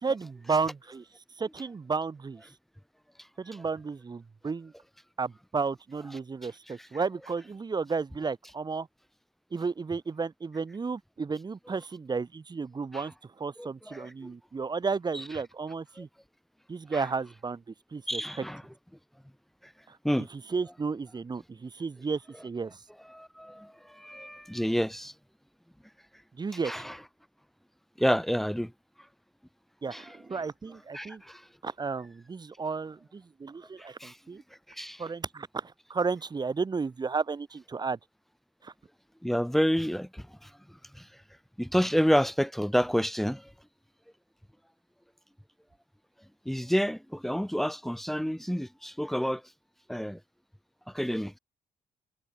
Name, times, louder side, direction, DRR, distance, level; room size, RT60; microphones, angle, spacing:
voice 1, 0.0-1.0 1.4-2.4 3.4-4.7 5.2-8.9 9.5-16.1 16.7-18.4 19.9-20.0 20.3-22.8 26.4-26.8 29.8-31.2 31.6-34.4 35.0-38.0 38.6-38.7, right 4 dB, 25° right, 5.0 m, -33 dB
voice 2, 13.6-14.3 15.1-15.2 16.0-16.1 16.9-17.1 18.1-18.6 20.0-20.3 23.1-25.1 26.6-27.0 28.0-28.7 29.9-30.2 30.9-31.4 34.0-34.2 34.7-35.0 39.2-40.5 40.9-41.1 41.6-43.5 46.4-49.4 49.9-50.2 50.9-51.4, equal, ahead, 2.9 m, -29 dB
wide cardioid pair, 170°, 15 cm